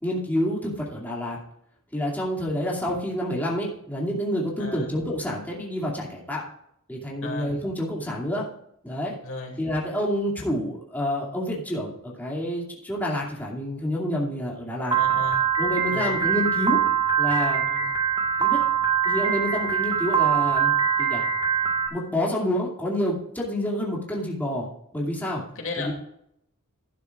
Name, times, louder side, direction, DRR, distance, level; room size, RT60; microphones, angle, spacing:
voice 1, 0.0-1.4 1.9-6.4 6.9-8.5 8.8-9.2 9.6-15.0 15.6-16.8 17.2-17.6 18.4-18.6 19.0-21.2 21.9-25.4 25.8-25.9, equal, 10° left, -4 dB, 2.5 m, -28 dB
voice 2, 4.6-4.9 7.2-7.5 9.2-9.6 14.9-15.4 15.9-16.1 17.7-17.9 25.6-25.9, left 2 dB, 60° left, 1 dB, 2.6 m, -35 dB
Piano, 14.9-21.9, right 7 dB, 20° right, 1.6 m, -23 dB
12.0 x 12.0 x 2.5 m, 0.73 s
head